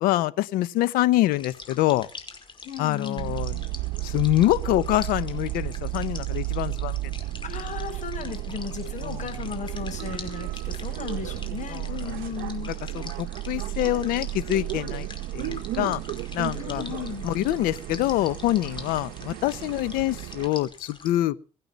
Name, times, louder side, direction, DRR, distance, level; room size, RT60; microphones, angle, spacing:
voice 1, 0.0-2.1 2.8-3.6 4.0-7.0 9.0-9.2 11.7-12.1 12.9-15.1 15.3-16.0 16.3-16.8 17.2-21.4, left 15 dB, 85° left, 0.9 m, -25 dB
sound 1, 1.3-21.2, left 4 dB, 35° left, 5.1 m, -45 dB
voice 2, 2.6-3.3 7.4-12.7 16.6-17.3, left 7 dB, 60° left, 7.0 m, -35 dB
sound 2, 3.2-20.5, right 17 dB, 85° right, 0.8 m, -33 dB
24.5 x 8.9 x 5.3 m
supercardioid pair, 80°, 15 cm